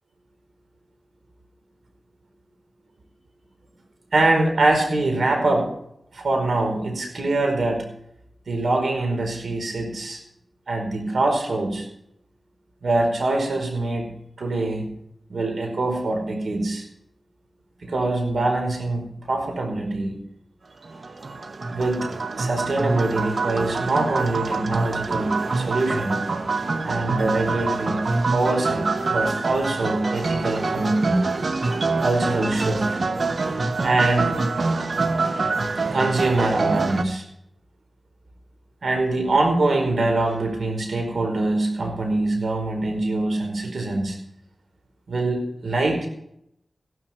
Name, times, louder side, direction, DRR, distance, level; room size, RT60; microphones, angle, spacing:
voice 1, 4.1-5.7 6.1-7.9 8.5-10.2 10.7-11.9 12.8-14.1 14.4-14.9 15.3-16.9 17.8-20.2 21.7-22.1 22.4-26.2 26.8-28.0 28.3-31.3 32.0-33.0 33.8-34.4 35.9-37.2 38.8-44.2 45.1-46.1, right 2 dB, 80° right, 3 dB, 4.8 m, -24 dB
sound 1, 20.8-37.0, right 3 dB, 65° right, 1.2 m, -25 dB
16.0 x 12.5 x 4.5 m, 0.76 s
wide cardioid pair, 70°, 0 cm